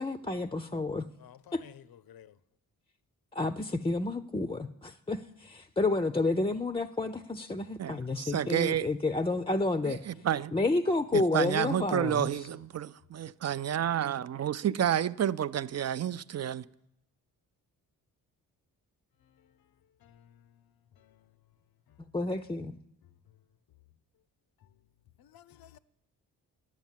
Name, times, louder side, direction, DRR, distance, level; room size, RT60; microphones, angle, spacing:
voice 1, 0.0-1.1 1.5-1.6 3.3-10.0 10.5-12.5 22.1-22.8, left 2 dB, 15° left, 0.5 m, -30 dB
voice 2, 1.2-2.3 20.0-20.3 25.2-25.8, left 10 dB, 70° left, 0.6 m, -54 dB
voice 3, 7.8-8.9 9.8-10.5 11.1-16.7, right 10 dB, 45° right, 0.5 m, -30 dB
10.5 x 9.4 x 7.4 m
cardioid pair, 65°, 37 cm